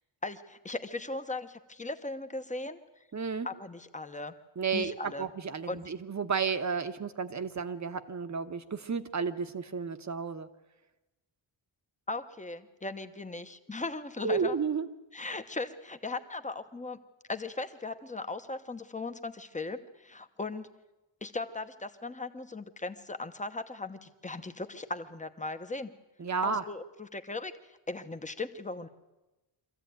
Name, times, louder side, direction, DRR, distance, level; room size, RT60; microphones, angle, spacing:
voice 1, 0.2-2.8 3.4-4.3 4.7-5.3 5.7-5.8 12.1-14.6 15.1-17.0 17.3-20.7 21.2-25.9 26.4-27.5 27.9-28.9, left 3 dB, 15° left, 9 dB, 1.0 m, -38 dB
voice 2, 3.1-3.5 4.6-10.5 14.2-14.9 26.2-26.6, right 5 dB, 35° right, 10 dB, 1.1 m, -32 dB
24.5 x 15.0 x 9.4 m, 1.0 s
wide cardioid pair, 175°, 47 cm